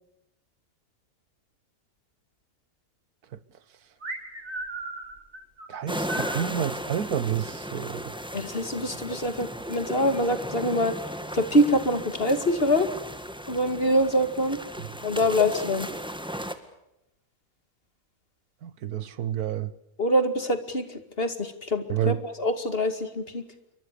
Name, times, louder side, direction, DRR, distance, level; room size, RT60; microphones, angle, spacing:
sound 1, 4.0-6.5, right 2 dB, 60° right, 4.3 m, -36 dB
voice 1, 5.7-8.0 18.6-19.7 21.9-22.2, right 9 dB, 85° right, 1.7 m, -29 dB
sound 2, 5.9-16.5, equal, 5° right, 1.8 m, -36 dB
voice 2, 8.3-11.0 11.3-12.9 13.5-14.6 15.0-15.9 20.0-23.4, equal, 40° left, 2.5 m, -25 dB
28.5 x 24.0 x 6.8 m
omnidirectional pair, 1.6 m